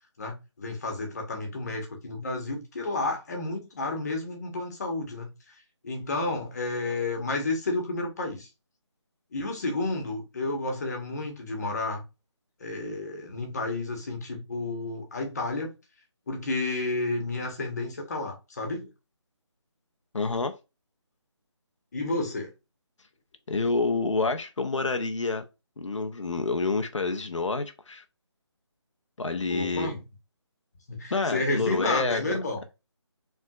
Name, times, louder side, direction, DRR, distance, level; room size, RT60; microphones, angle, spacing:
voice 1, 0.2-5.5 5.8-8.5 9.3-12.0 12.6-15.7 16.3-18.9 21.9-22.5 29.5-30.0 30.9-32.6, left 2 dB, 35° left, 1.3 m, -31 dB
voice 2, 20.1-20.6 23.5-25.4 25.8-28.0 29.2-29.9 31.1-32.4, left 3 dB, 85° left, 0.8 m, -28 dB
4.5 x 3.5 x 2.4 m
figure-of-eight pair, 170°, 15 cm